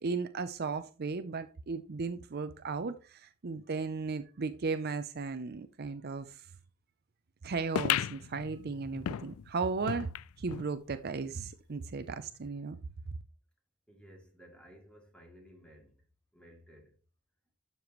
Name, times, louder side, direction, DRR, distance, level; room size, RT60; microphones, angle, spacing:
voice 1, 0.0-6.5 7.4-10.1 10.4-12.8, right 4 dB, 45° right, 0.5 m, -36 dB
sound 1, 7.7-10.7 11.1-11.2 11.4-11.5 12.3-12.4, left 10 dB, 75° left, 0.3 m, -35 dB
voice 2, 13.9-16.0 16.3-16.9, equal, 5° left, 2.6 m, -56 dB
12.0 x 6.8 x 3.0 m
head